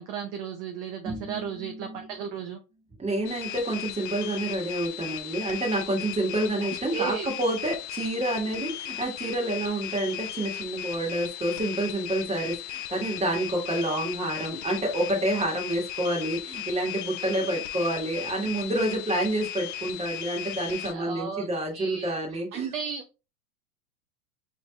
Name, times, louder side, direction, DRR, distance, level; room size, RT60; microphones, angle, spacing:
voice 1, 0.0-2.6 6.9-7.3 20.9-21.4 21.7-23.0, right 7 dB, 35° right, 5 dB, 0.6 m, -34 dB
voice 2, 1.0-2.1 3.0-22.7, right 1 dB, 15° right, 0 dB, 1.5 m, -28 dB
sound 1, 3.3-20.9, left 12 dB, 50° left, 0.6 m, -37 dB
4.9 x 3.1 x 2.3 m, 0.29 s
hypercardioid pair, 110°, 44 cm